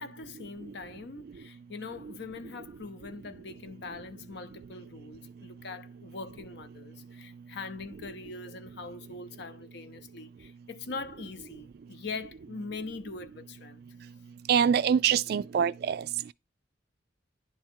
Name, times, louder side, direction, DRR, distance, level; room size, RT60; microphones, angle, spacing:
voice 1, 0.0-13.8, left 4 dB, 60° left, 0.7 m, -42 dB
voice 2, 14.5-16.0, right 8 dB, 55° right, 0.3 m, -24 dB
10.5 x 3.6 x 4.4 m
head